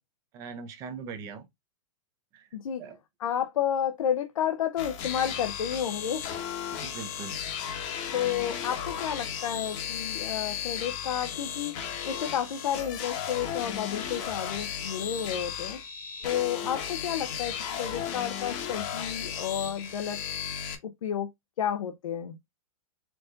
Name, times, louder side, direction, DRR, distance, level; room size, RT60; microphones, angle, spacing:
voice 1, 0.3-1.5 2.3-2.5 2.8-3.0 6.7-7.4, right 5 dB, 20° right, 0.5 m, -41 dB
voice 2, 3.2-6.2 8.1-11.7 12.0-15.8 16.2-20.2 20.8-21.3 21.6-22.4, left 9 dB, 90° left, 0.6 m, -31 dB
sound 1, 4.8-20.7, left 8 dB, 30° left, 0.9 m, -35 dB
4.6 x 2.5 x 3.7 m
supercardioid pair, 170°, 17 cm